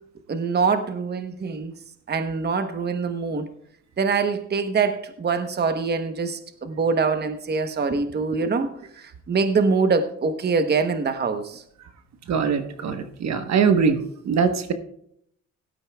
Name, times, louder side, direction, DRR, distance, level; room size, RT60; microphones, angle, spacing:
voice 1, 0.3-1.7 2.1-3.5 4.0-11.6, right 4 dB, 35° right, 8 dB, 1.0 m, -24 dB
voice 2, 12.3-14.0 14.2-14.7, right 6 dB, 60° right, 8 dB, 1.2 m, -22 dB
17.0 x 12.5 x 2.3 m, 0.70 s
cardioid pair, 90°, 30 cm